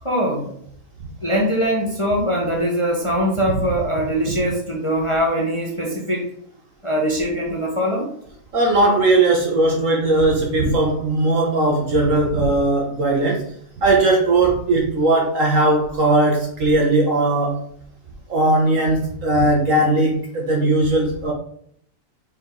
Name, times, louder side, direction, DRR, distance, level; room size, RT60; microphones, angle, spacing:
voice 1, 0.0-0.5 1.2-6.3 6.8-8.1, equal, 20° left, -2 dB, 1.0 m, -22 dB
voice 2, 8.5-13.5 13.8-17.6 18.3-21.3, right 2 dB, 55° right, 0 dB, 1.3 m, -18 dB
5.2 x 4.8 x 3.8 m, 0.66 s
omnidirectional pair, 1.7 m